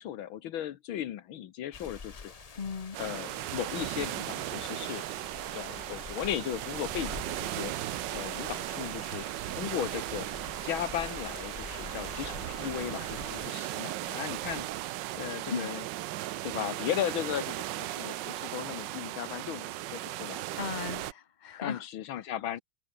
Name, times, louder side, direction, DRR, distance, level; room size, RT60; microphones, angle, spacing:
voice 1, 0.0-2.3 3.0-5.0 5.5-7.7 8.1-10.3 10.6-14.7 15.1-15.8 16.4-20.4 21.6-22.6, left 11 dB, 80° left, 1.8 m, -36 dB
sound 1, 1.7-13.5, left 5 dB, 55° left, 0.4 m, -47 dB
voice 2, 2.5-3.0 15.5-15.8 16.2-16.4 20.6-21.8 22.2-22.3, left 6 dB, 35° left, 0.8 m, -37 dB
sound 2, 2.9-21.1, right 15 dB, 70° right, 1.2 m, -37 dB
omnidirectional pair, 2.3 m